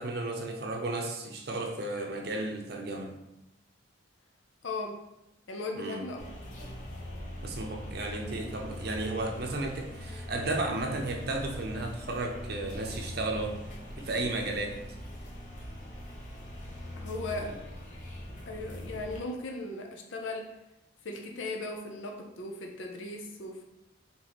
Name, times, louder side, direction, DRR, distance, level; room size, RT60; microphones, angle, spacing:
voice 1, 0.0-3.2 5.8-6.0 7.4-13.6 14.0-14.7 17.3-17.6, right 2 dB, 50° right, 2 dB, 0.6 m, -34 dB
voice 2, 4.6-5.0 5.5-6.2 17.0-17.5 18.5-20.5 21.0-23.7, left 2 dB, 75° left, 2 dB, 0.6 m, -37 dB
sound 1, 6.2-19.2, left 1 dB, 40° left, 0.9 m, -42 dB
4.0 x 3.6 x 3.0 m, 0.89 s
head